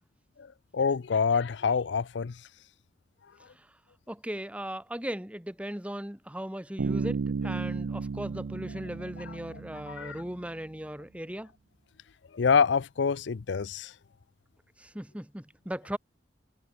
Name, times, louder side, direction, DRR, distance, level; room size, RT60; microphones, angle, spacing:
voice 1, 0.4-2.4 9.9-10.2 12.3-13.9, left 5 dB, 80° left, 0.5 m, -26 dB
voice 2, 4.1-11.5 14.8-16.0, equal, 5° right, 1.2 m, -38 dB
Bass guitar, 6.8-10.4, right 4 dB, 75° right, 0.4 m, -33 dB
head